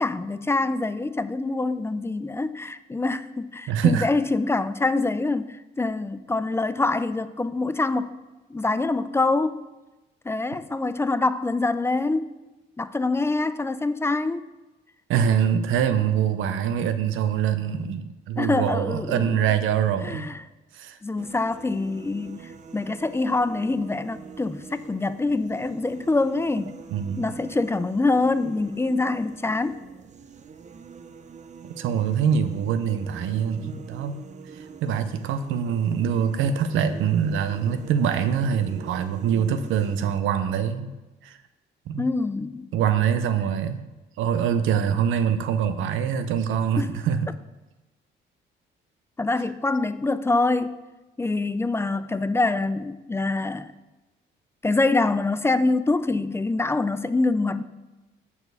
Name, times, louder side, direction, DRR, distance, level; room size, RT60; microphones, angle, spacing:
voice 1, 0.0-8.1 8.5-9.6 10.2-12.3 12.8-14.4 18.4-19.5 20.0-20.4 21.0-26.8 27.2-29.8 42.0-42.7 46.8-47.0 49.2-50.8 51.2-53.7 54.6-57.6, left 3 dB, 15° left, 0.3 m, -25 dB
voice 2, 3.7-4.1 15.1-20.4 20.7-21.0 26.9-27.3 31.8-34.3 34.5-40.9 41.2-41.4 41.9-42.1 42.7-43.9 44.2-47.3, right 8 dB, 85° right, 0.6 m, -24 dB
sound 1, 21.2-40.2, right 6 dB, 35° right, 0.5 m, -44 dB
7.0 x 4.2 x 6.6 m
cardioid pair, 90°, 20 cm